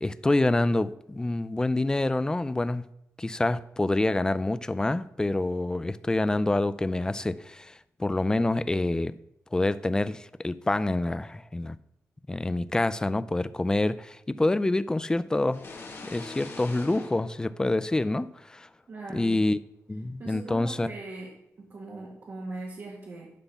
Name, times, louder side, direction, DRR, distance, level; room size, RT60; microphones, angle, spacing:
voice 1, 0.0-2.8 3.2-9.1 9.5-11.8 12.3-15.6 16.0-18.7 19.1-19.6 19.9-20.9, left 2 dB, 15° left, 0.4 m, -27 dB
sound 1, 15.5-18.3, left 3 dB, 45° left, 1.6 m, -44 dB
voice 2, 18.9-19.4 20.2-23.3, right 2 dB, 50° right, 1.9 m, -40 dB
11.5 x 4.2 x 6.9 m
wide cardioid pair, 130°, 5 cm